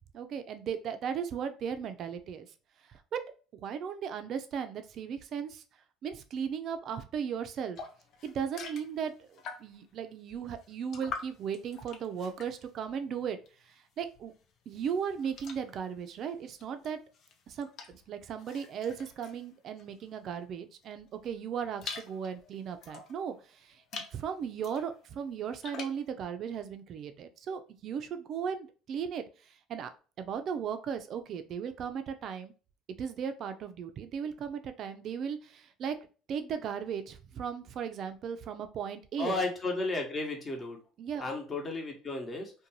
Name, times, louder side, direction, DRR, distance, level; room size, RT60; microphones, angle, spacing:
voice 1, 0.1-2.5 2.9-3.2 3.6-5.6 6.0-7.8 8.2-13.4 13.6-14.3 14.7-17.0 17.5-29.9 30.2-32.5 33.0-36.0 36.3-39.4 41.0-41.3, right 7 dB, 55° right, 9 dB, 0.4 m, -36 dB
sound 1, 7.8-9.9 10.3-13.7 14.0-20.3 20.8-23.2 23.7-24.2 24.6-26.1, left 5 dB, 60° left, 0.5 m, -46 dB
voice 2, 39.2-40.8 41.2-42.5, left 2 dB, 30° left, 3 dB, 0.9 m, -33 dB
2.5 x 2.2 x 2.9 m, 0.36 s
supercardioid pair, 80°, 0 cm